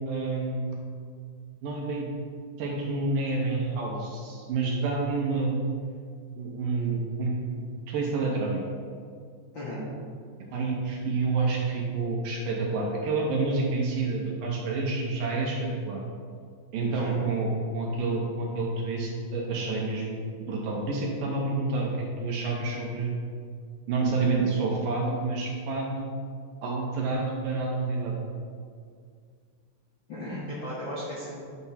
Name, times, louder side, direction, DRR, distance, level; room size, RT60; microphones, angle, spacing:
voice 1, 0.1-0.8 1.6-2.1 2.6-5.6 6.4-8.6 10.5-16.0 16.7-21.9 22.2-23.1 23.9-26.1 26.6-28.2, right 3 dB, 70° right, -2 dB, 2.3 m, -28 dB
voice 2, 16.9-17.2 30.1-31.4, left 1 dB, 75° left, -8 dB, 1.1 m, -35 dB
9.5 x 3.5 x 5.7 m, 2.1 s
omnidirectional pair, 4.6 m